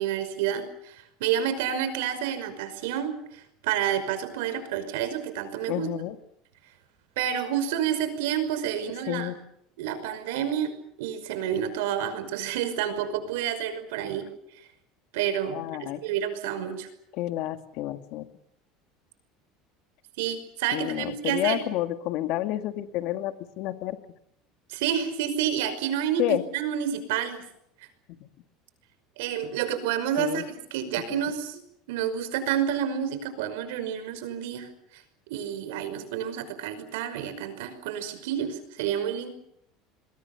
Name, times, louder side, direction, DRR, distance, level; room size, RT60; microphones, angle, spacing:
voice 1, 0.0-5.9 7.2-9.3 9.8-10.7 11.0-14.3 14.5-14.7 15.1-16.9 20.2-21.6 24.7-27.4 29.2-30.5 30.7-31.6 31.9-35.0 35.3-39.3, right 9 dB, 85° right, 10 dB, 5.4 m, -29 dB
voice 2, 5.7-6.2 9.1-9.4 15.5-16.0 17.1-18.3 20.7-24.0 26.2-26.4 28.2-28.3 30.2-30.4 31.1-31.2, left 14 dB, 60° left, 9 dB, 2.0 m, -30 dB
28.0 x 22.0 x 6.9 m, 0.75 s
cardioid pair, 140°, 0 cm